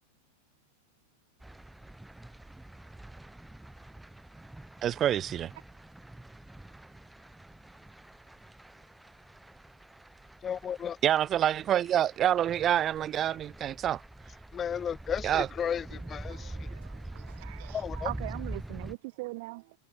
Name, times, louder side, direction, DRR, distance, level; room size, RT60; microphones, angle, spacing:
sound 1, 1.4-18.9, right 1 dB, 5° right, 1.8 m, -45 dB
voice 1, 4.8-5.5 11.0-14.0 15.2-15.5, right 10 dB, 30° right, 0.7 m, -27 dB
voice 2, 10.4-11.0 14.5-16.7 17.7-18.1, left 8 dB, 25° left, 1.2 m, -34 dB
voice 3, 16.3-19.7, right 24 dB, 50° right, 1.5 m, -41 dB
figure-of-eight pair, 90°, 0 cm